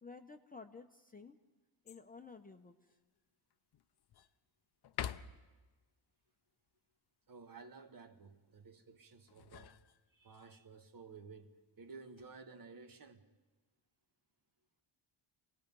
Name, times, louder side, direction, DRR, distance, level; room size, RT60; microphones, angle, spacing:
voice 1, 0.0-1.4 1.8-2.8, left 4 dB, 15° left, 0.9 m, -53 dB
sound 1, 1.9-2.3 2.9-3.0 3.5-4.3 4.8-5.6 9.1-10.5 11.8-12.4, left 9 dB, 50° left, 0.7 m, -47 dB
voice 2, 7.3-9.8 10.1-13.3, right 4 dB, 40° right, 1.6 m, -54 dB
28.0 x 19.0 x 5.4 m
cardioid pair, 125°, 50 cm